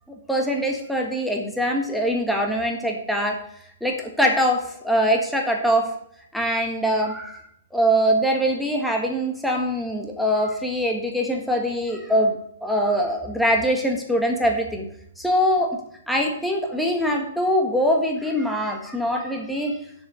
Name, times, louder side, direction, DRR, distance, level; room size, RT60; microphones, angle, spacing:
voice 1, 0.3-3.4 3.8-5.9 6.3-7.4 7.7-14.9 15.2-15.8 16.1-19.8, equal, ahead, 1 dB, 1.5 m, -23 dB
6.8 x 6.7 x 7.6 m, 0.69 s
hypercardioid pair, 140°, 0 cm